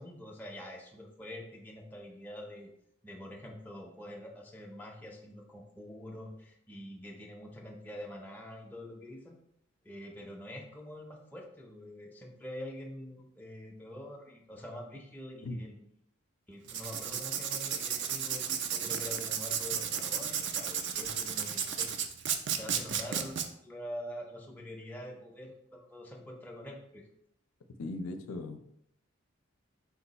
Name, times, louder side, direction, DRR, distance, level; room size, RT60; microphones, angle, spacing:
voice 1, 0.0-2.7 3.0-9.4 9.8-15.8 16.5-22.0 22.5-27.1, equal, 10° left, -1 dB, 0.5 m, -45 dB
Writing, 16.6-23.5, right 8 dB, 55° right, 0.4 m, -33 dB
voice 2, 27.8-28.6, left 2 dB, 90° left, 6 dB, 0.5 m, -38 dB
4.5 x 2.3 x 4.0 m, 0.73 s
head